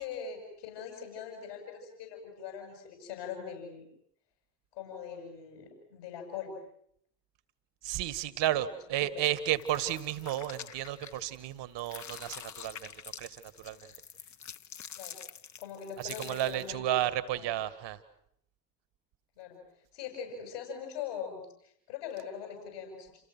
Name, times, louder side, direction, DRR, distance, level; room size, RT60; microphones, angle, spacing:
voice 1, 0.0-3.8 4.7-6.6 8.5-8.6 15.0-15.2 15.6-17.0 17.3-17.5 19.4-19.6 19.9-23.2, left 7 dB, 75° left, 1 dB, 7.2 m, -42 dB
voice 2, 7.8-12.9 13.2-13.9 16.0-18.0, right 13 dB, 60° right, 14 dB, 2.0 m, -32 dB
sound 1, 9.5-11.5 11.8-16.7, left 8 dB, 35° left, 1.1 m, -46 dB
29.5 x 29.0 x 6.3 m, 0.70 s
figure-of-eight pair, 45°, 49 cm